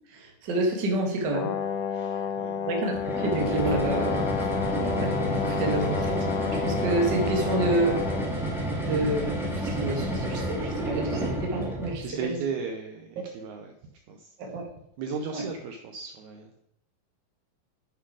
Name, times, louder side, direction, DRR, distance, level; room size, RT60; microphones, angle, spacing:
voice 1, 0.1-1.6 2.0-2.2 2.6-4.5 4.8-6.3 6.6-8.0 8.8-12.4 14.4-14.7 15.3-15.5, right 2 dB, 55° right, 1 dB, 1.2 m, -29 dB
Brass instrument, 1.3-8.3, left 7 dB, 75° left, 1.6 m, -30 dB
voice 2, 1.9-2.6 12.0-13.7 14.1-14.3 15.0-16.7, right 5 dB, 85° right, 4 dB, 1.6 m, -36 dB
sound 1, 2.9-12.0, right 1 dB, ahead, 1.6 m, -30 dB
8.1 x 5.8 x 4.8 m, 0.75 s
omnidirectional pair, 4.2 m